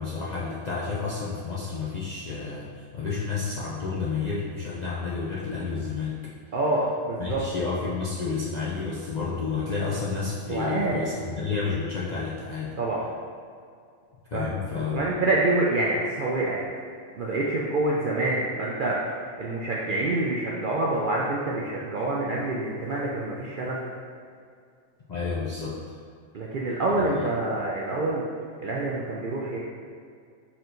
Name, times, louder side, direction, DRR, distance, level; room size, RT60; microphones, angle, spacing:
voice 1, 0.0-6.2 7.2-12.7 14.3-15.1 25.1-26.0 27.0-27.3, left 4 dB, 65° left, -6 dB, 0.4 m, -30 dB
voice 2, 6.5-7.4 10.5-11.0 12.8-13.0 14.3-14.5 14.9-16.6 17.2-19.0 19.4-23.8 26.3-28.2 28.6-29.6, right 2 dB, 65° right, -4 dB, 0.5 m, -26 dB
4.5 x 4.3 x 2.6 m, 2.3 s
omnidirectional pair, 1.4 m